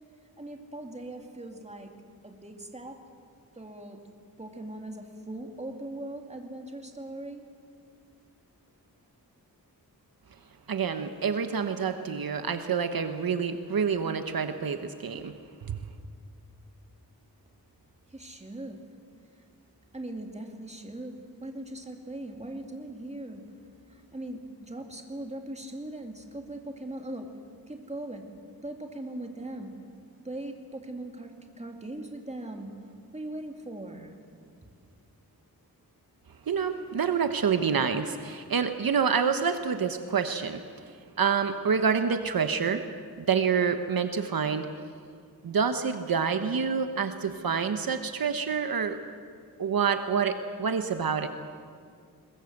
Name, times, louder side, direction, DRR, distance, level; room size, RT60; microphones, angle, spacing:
voice 1, 0.4-1.9 2.2-3.0 3.6-4.0 4.4-7.4 18.1-18.8 19.9-23.4 23.9-27.3 27.7-28.3 28.6-29.7 30.2-32.7 33.1-34.1, right 1 dB, 20° right, 3 dB, 2.5 m, -40 dB
voice 2, 10.7-15.3 15.7-15.8 36.5-40.6 41.2-42.8 43.3-44.7 45.4-49.0 49.6-51.3, right 6 dB, 70° right, 8 dB, 1.1 m, -27 dB
21.5 x 21.5 x 8.0 m, 2.3 s
wide cardioid pair, 115°, 37 cm